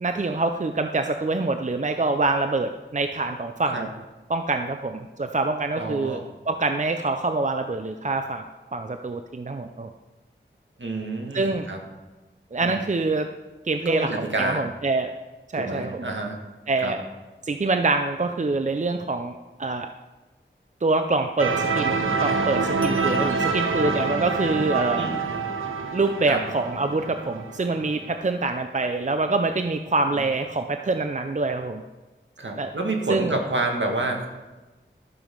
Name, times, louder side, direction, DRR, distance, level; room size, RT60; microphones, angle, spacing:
voice 1, 0.0-3.9 4.3-6.2 6.5-8.4 8.7-9.9 11.3-11.7 12.5-13.3 13.6-15.1 15.5-16.1 16.7-17.0 17.4-19.9 20.8-21.9 22.2-25.1 25.9-31.8 32.6-32.7 33.1-33.4, right 3 dB, 35° right, 7 dB, 0.5 m, -25 dB
voice 2, 5.8-6.2 10.8-11.8 12.6-12.8 13.9-14.6 15.5-16.4 16.8-16.9 25.0-25.2 26.2-26.4 32.4-34.3, right 2 dB, 65° right, 2 dB, 1.7 m, -28 dB
sound 1, 21.4-28.1, right 4 dB, 90° right, 1.0 m, -26 dB
12.0 x 7.0 x 5.3 m, 1.2 s
wide cardioid pair, 60°, 21 cm